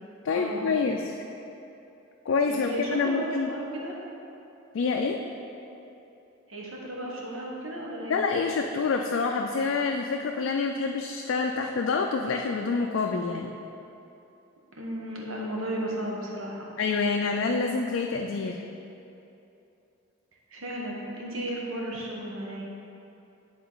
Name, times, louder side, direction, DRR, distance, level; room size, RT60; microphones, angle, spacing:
voice 1, 0.2-1.2 2.3-3.5 4.7-5.2 8.1-13.5 16.8-18.6, left 4 dB, 65° left, 2 dB, 0.3 m, -27 dB
voice 2, 2.5-3.9 6.5-8.2 14.8-16.7 20.5-22.7, right 1 dB, 90° right, -3 dB, 1.2 m, -34 dB
9.5 x 3.9 x 3.9 m, 2.9 s
head